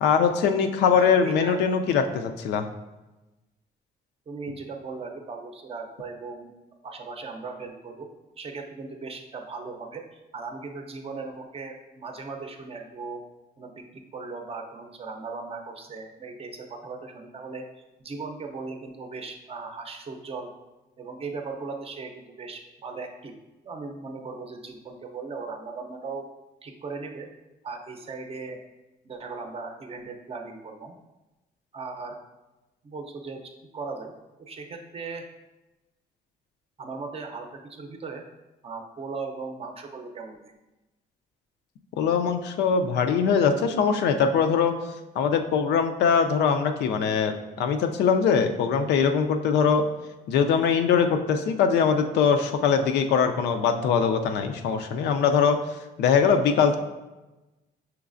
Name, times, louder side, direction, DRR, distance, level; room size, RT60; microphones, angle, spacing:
voice 1, 0.0-2.7 42.0-44.7 45.2-49.9 50.3-55.6 56.0-56.8, left 6 dB, 85° left, 6 dB, 0.4 m, -22 dB
voice 2, 0.9-1.6 4.3-6.5 6.8-8.1 8.4-13.2 13.6-17.6 18.0-20.5 21.0-23.4 23.6-26.3 26.6-27.3 27.6-28.6 29.0-30.9 31.7-32.2 32.8-34.1 34.4-35.2 36.8-38.2 38.6-40.5, right 4 dB, 35° right, 4 dB, 0.6 m, -38 dB
5.8 x 3.1 x 2.5 m, 1.1 s
cardioid pair, 105°, 17 cm